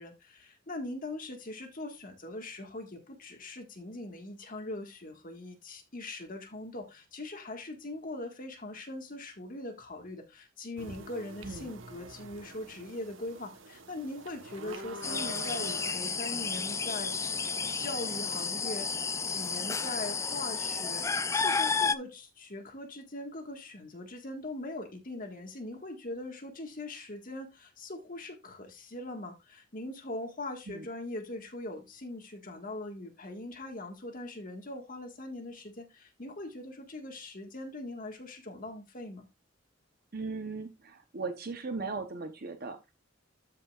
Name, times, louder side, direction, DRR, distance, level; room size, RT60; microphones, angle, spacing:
voice 1, 0.0-39.3, left 2 dB, 45° left, 1.7 m, -41 dB
sound 1, 10.8-15.9, right 3 dB, 90° right, 1.2 m, -46 dB
sound 2, 15.0-21.9, left 5 dB, 15° left, 0.3 m, -32 dB
voice 2, 40.1-42.9, right 4 dB, 50° right, 0.9 m, -38 dB
13.5 x 5.4 x 2.4 m
head